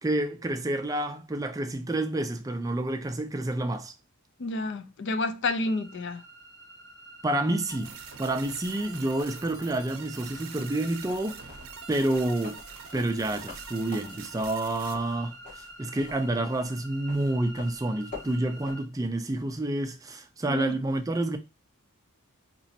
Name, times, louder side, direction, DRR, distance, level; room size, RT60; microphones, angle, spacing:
voice 1, 0.0-3.9 7.2-11.4 11.9-12.6 12.9-21.4, right 1 dB, 15° right, 0.4 m, -29 dB
voice 2, 4.4-6.2 20.5-20.7, left 2 dB, 55° left, 0.4 m, -30 dB
sound 1, 5.5-18.9, right 2 dB, 15° left, 2.3 m, -48 dB
sound 2, 7.7-14.9, right 7 dB, 75° right, 0.6 m, -45 dB
sound 3, 10.9-18.7, left 4 dB, 35° left, 1.6 m, -46 dB
4.1 x 3.0 x 2.7 m
head